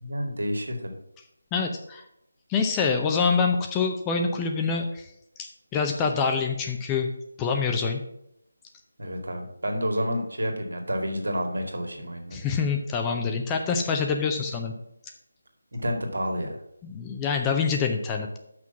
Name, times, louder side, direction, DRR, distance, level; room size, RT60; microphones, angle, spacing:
voice 1, 0.0-0.8 9.0-12.4 15.7-16.6, equal, 65° right, 3 dB, 2.1 m, -29 dB
voice 2, 1.5-2.0 2.5-5.1 5.4-7.1 7.4-8.0 12.3-14.7 16.8-18.4, left 5 dB, 10° left, 3 dB, 0.7 m, -26 dB
6.0 x 6.0 x 7.1 m, 0.78 s
figure-of-eight pair, 155°, 0 cm